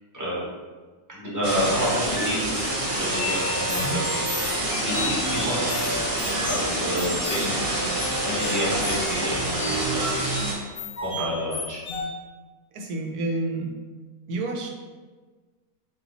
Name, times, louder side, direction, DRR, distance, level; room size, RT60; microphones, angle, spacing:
voice 1, 1.1-2.5 3.0-6.0 6.2-7.5 8.2-10.4 11.0-11.8, equal, 15° right, -8 dB, 1.3 m, -29 dB
sound 1, 1.4-10.5, right 1 dB, 60° right, 1.4 m, -27 dB
sound 2, 2.1-7.5 7.9-12.1, left 2 dB, 50° left, 0.9 m, -34 dB
voice 2, 12.7-13.7 14.3-14.8, right 2 dB, 85° right, 1 dB, 1.2 m, -29 dB
4.3 x 2.9 x 4.0 m, 1.4 s
omnidirectional pair, 1.6 m